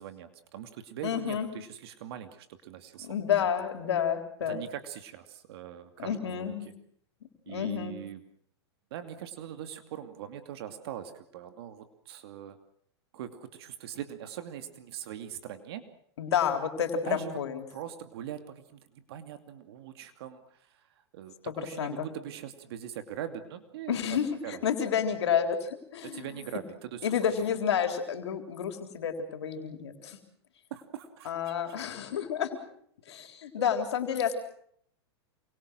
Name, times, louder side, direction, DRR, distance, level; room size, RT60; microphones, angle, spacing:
voice 1, 0.0-3.1 4.5-6.7 7.5-8.2 8.9-12.6 13.1-15.9 17.0-17.4 17.7-24.0 24.4-24.6 26.0-27.1 27.5-27.6 30.7-32.0, right 10 dB, 65° right, 7 dB, 2.6 m, -42 dB
voice 2, 1.0-1.5 3.0-4.6 6.0-6.7 7.5-8.0 16.2-17.6 21.5-22.1 23.9-26.3 27.0-30.2 31.3-32.5 33.1-34.3, left 8 dB, 80° left, 6 dB, 3.8 m, -30 dB
28.0 x 24.5 x 6.4 m, 0.69 s
hypercardioid pair, 110°, 14 cm